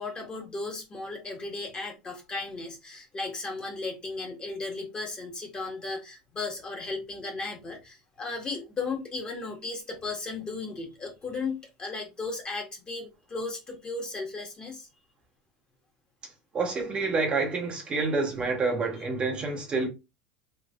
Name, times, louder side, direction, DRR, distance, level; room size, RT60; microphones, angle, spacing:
voice 1, 0.0-14.9, left 3 dB, 25° left, 1.4 m, -35 dB
voice 2, 16.5-19.9, right 3 dB, 30° right, 0.9 m, -28 dB
3.2 x 3.0 x 2.5 m
supercardioid pair, 115°, 4 cm